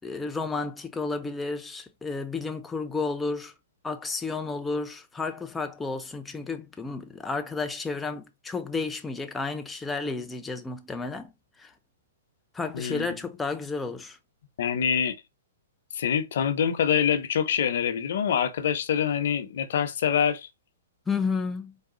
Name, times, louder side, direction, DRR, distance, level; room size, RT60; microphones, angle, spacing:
voice 1, 0.0-3.5 3.8-11.3 11.6-11.7 12.5-14.2 21.1-21.7, left 4 dB, 10° left, 0.6 m, -32 dB
voice 2, 12.7-13.1 14.6-15.1 15.9-20.5, left 8 dB, 65° left, 0.8 m, -25 dB
4.0 x 2.3 x 3.9 m
hypercardioid pair, 135°, 0 cm